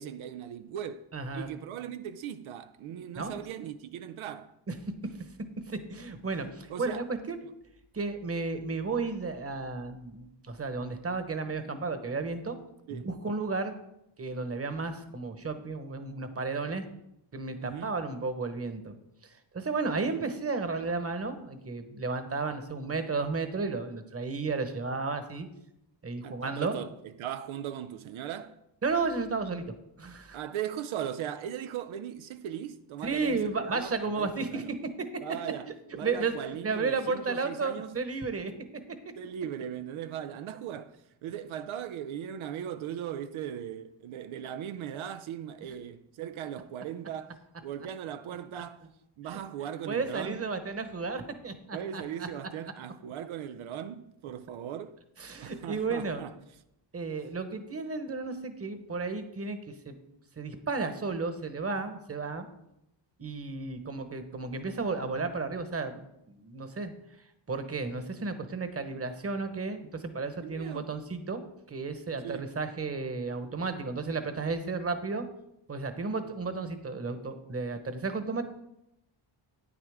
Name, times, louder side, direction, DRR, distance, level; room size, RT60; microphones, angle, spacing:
voice 1, 0.0-1.1 1.3-4.6 6.7-7.1 7.4-7.5 12.9-13.1 17.6-18.0 26.2-28.6 30.3-34.7 35.2-38.0 39.2-48.8 49.2-50.4 51.7-55.0 55.4-56.3 70.4-70.9 72.2-72.5, right 9 dB, 85° right, 0.6 m, -38 dB
voice 2, 1.1-1.5 3.2-3.4 4.7-4.8 5.7-7.4 7.9-12.6 12.9-13.7 14.2-16.8 17.3-18.9 19.2-25.5 26.0-26.7 28.8-30.4 33.0-34.6 35.0-35.1 36.0-38.5 49.2-49.4 49.8-52.3 55.2-56.2 56.9-59.6 59.8-60.0 60.4-62.5 63.2-66.9 67.5-71.4 71.7-75.2 75.7-78.4, right 4 dB, 30° right, 1.1 m, -33 dB
9.7 x 9.0 x 3.5 m
cardioid pair, 85°, 47 cm